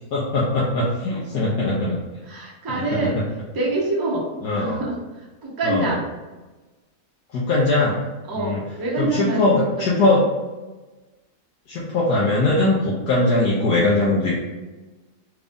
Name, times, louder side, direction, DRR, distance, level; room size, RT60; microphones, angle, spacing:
voice 1, 0.1-2.0 3.0-3.1 4.4-4.8 5.6-5.9 7.3-8.0 8.4-8.6 9.0-10.2 11.7-14.3, left 2 dB, 85° left, -6 dB, 1.3 m, -20 dB
voice 2, 2.2-3.3 3.5-6.0 8.3-10.2, right 2 dB, 35° right, -3 dB, 0.3 m, -26 dB
3.5 x 2.6 x 3.4 m, 1.2 s
omnidirectional pair, 1.7 m